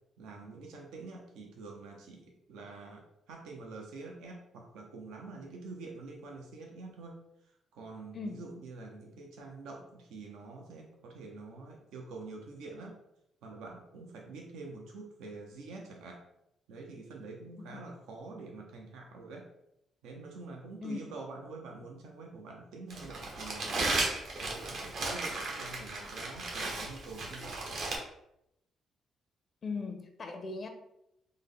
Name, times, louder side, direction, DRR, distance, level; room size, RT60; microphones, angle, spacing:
voice 1, 0.2-7.2 7.4-13.0 13.4-16.3 16.7-19.5 20.0-23.8 24.4-27.8, right 3 dB, 85° right, 0 dB, 0.5 m, -46 dB
voice 2, 8.1-8.4 20.8-21.0 29.6-30.7, left 4 dB, 45° left, 6 dB, 0.4 m, -38 dB
Crumpling crinkling, 22.9-28.0, right 2 dB, 65° right, 0.9 m, -35 dB
3.4 x 2.1 x 3.6 m, 0.81 s
cardioid pair, 90°, 0 cm